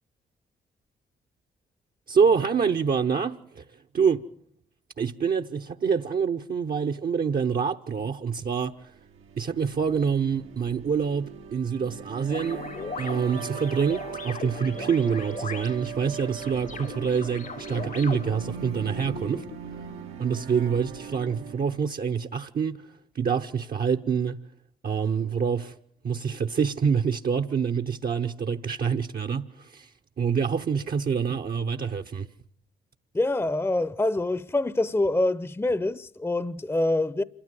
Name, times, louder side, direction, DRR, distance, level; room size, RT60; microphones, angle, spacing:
voice 1, 2.1-3.6 3.9-4.2 5.0-8.9 9.4-12.7 13.0-19.5 20.2-22.9 23.1-24.4 24.8-25.8 26.0-29.9 30.2-32.3, right 6 dB, 45° right, 0.9 m, -26 dB
sound 1, 8.9-21.9, right 8 dB, 80° right, 1.3 m, -40 dB
sound 2, 12.3-19.6, left 5 dB, 40° left, 1.0 m, -39 dB
voice 2, 33.1-37.2, left 2 dB, 10° left, 0.7 m, -25 dB
27.0 x 13.0 x 7.6 m
hypercardioid pair, 45°, 20 cm